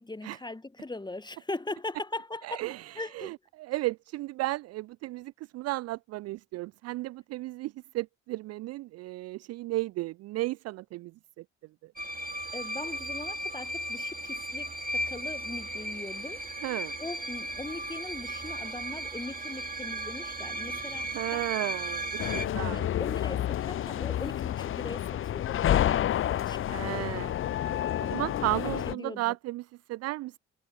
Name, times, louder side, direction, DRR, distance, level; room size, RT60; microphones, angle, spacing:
voice 1, 0.0-2.6 2.9-3.3 12.5-16.4 17.0-21.5 22.6-27.0 28.8-29.3, left 2 dB, 10° left, 1.4 m, -40 dB
voice 2, 2.4-11.1 11.4-11.5 16.6-17.0 21.1-22.9 26.7-30.4, right 19 dB, 45° right, 0.5 m, -34 dB
sound 1, 12.0-22.5, right 1 dB, 25° right, 4.2 m, -36 dB
sound 2, 22.2-28.9, left 11 dB, 35° left, 0.7 m, -29 dB
figure-of-eight pair, 45°, 35 cm